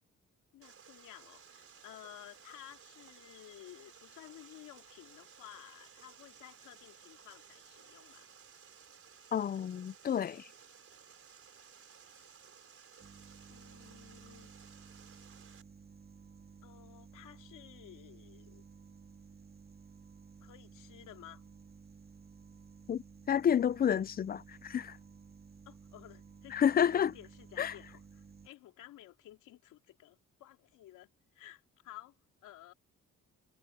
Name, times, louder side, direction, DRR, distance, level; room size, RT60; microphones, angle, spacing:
voice 1, 0.5-8.3 13.5-14.5 16.6-18.6 20.4-21.4 25.6-26.6 26.9-32.2 32.4-32.7, left 13 dB, 90° left, 2.9 m, -54 dB
Water, 0.6-15.6, right 7 dB, 50° right, 4.3 m, -57 dB
voice 2, 9.3-10.5 22.9-25.0 26.5-27.1 27.6-27.7, left 8 dB, 30° left, 0.4 m, -30 dB
sound 1, 13.0-28.5, right 5 dB, 30° right, 2.0 m, -55 dB
cardioid pair, 90°, 30 cm